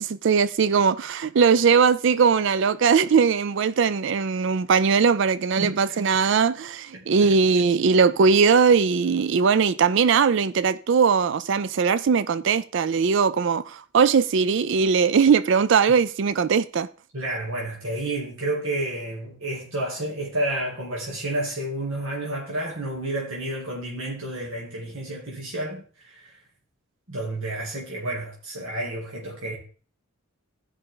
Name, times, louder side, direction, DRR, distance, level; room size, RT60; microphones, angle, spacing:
voice 1, 0.0-16.9, right 5 dB, 60° right, 0.4 m, -20 dB
voice 2, 5.6-6.0 6.9-7.3 17.1-26.4 27.1-29.6, right 1 dB, 75° right, 2.7 m, -30 dB
15.0 x 5.5 x 3.8 m
head